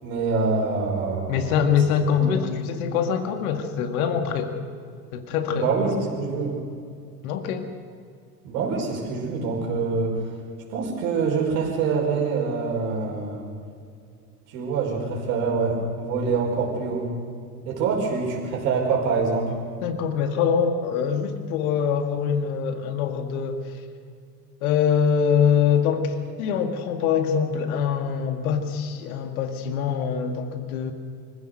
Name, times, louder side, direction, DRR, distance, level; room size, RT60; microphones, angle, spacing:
voice 1, 0.0-1.6 2.1-2.5 5.5-6.6 8.4-10.2 10.7-13.5 14.5-17.1 17.6-19.5, right 4 dB, 55° right, -1 dB, 5.5 m, -25 dB
voice 2, 1.3-4.6 5.1-5.7 7.2-7.7 19.8-23.7 24.6-30.9, left 7 dB, 55° left, 7 dB, 2.1 m, -24 dB
25.0 x 15.5 x 6.6 m, 2.3 s
figure-of-eight pair, 70°, 50 cm